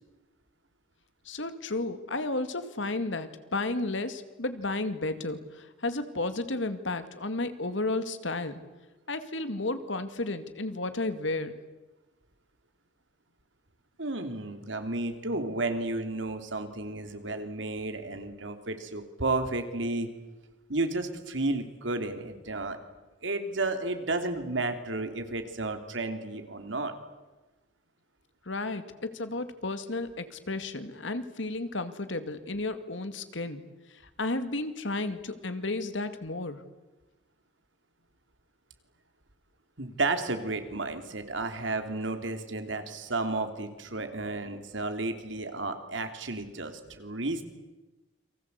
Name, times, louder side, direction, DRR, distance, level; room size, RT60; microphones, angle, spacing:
voice 1, 1.3-8.6 9.1-11.6 28.5-33.6 34.2-36.6, left 2 dB, 85° left, 10 dB, 2.3 m, -33 dB
voice 2, 14.0-20.1 20.7-22.8 23.2-26.9 39.8-47.4, right 2 dB, 85° right, 7 dB, 3.2 m, -32 dB
29.5 x 24.0 x 8.3 m, 1.1 s
head